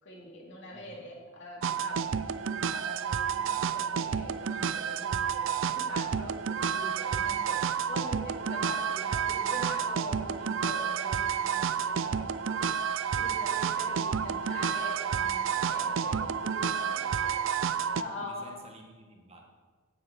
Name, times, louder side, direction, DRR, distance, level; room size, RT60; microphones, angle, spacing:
voice 1, 0.0-18.7, left 1 dB, 55° left, -2 dB, 2.8 m, -44 dB
voice 2, 0.7-1.1 13.8-14.2 18.2-19.5, right 2 dB, 30° right, 1 dB, 1.4 m, -53 dB
sound 1, 1.6-18.0, right 7 dB, 60° right, 0.4 m, -30 dB
9.7 x 7.8 x 8.2 m, 1.5 s
head